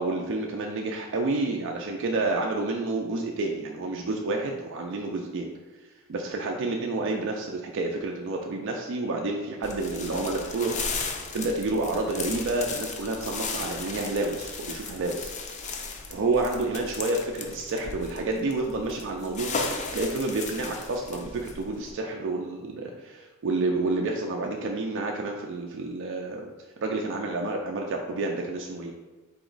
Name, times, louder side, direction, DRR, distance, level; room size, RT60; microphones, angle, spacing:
voice 1, 0.0-5.5 6.1-10.8 11.3-15.3 16.1-26.4 26.8-28.9, right 2 dB, 60° right, 1 dB, 0.4 m, -29 dB
sound 1, 9.6-21.9, left 4 dB, 35° left, 0.4 m, -36 dB
4.2 x 2.9 x 3.8 m, 1.2 s
head